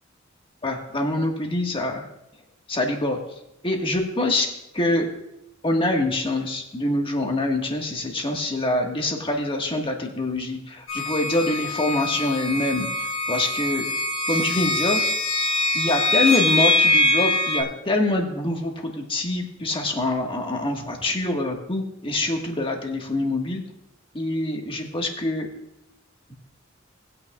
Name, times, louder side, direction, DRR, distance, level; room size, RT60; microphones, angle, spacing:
voice 1, 0.6-2.0 2.7-3.2 3.6-4.5 4.7-5.1 5.6-12.9 13.3-13.9 14.3-15.0 15.7-23.6 24.1-25.5, left 2 dB, 25° left, 2 dB, 1.5 m, -25 dB
sound 1, 10.9-17.6, left 2 dB, 85° left, 1.4 m, -23 dB
19.0 x 8.9 x 2.4 m, 0.82 s
head